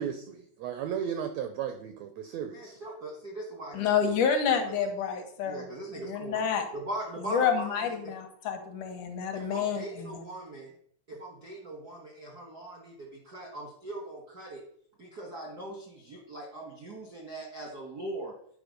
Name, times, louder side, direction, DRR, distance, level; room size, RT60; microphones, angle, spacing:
voice 1, 0.0-2.7, right 8 dB, 80° right, 7 dB, 1.5 m, -35 dB
voice 2, 2.5-4.1 5.4-8.1 9.3-10.7 11.1-14.6 15.0-18.3, right 1 dB, 55° right, -1 dB, 1.0 m, -40 dB
voice 3, 3.7-5.7 6.0-6.7 7.3-10.2, left 7 dB, 70° left, 6 dB, 2.5 m, -29 dB
9.4 x 5.2 x 5.2 m, 0.64 s
omnidirectional pair, 3.8 m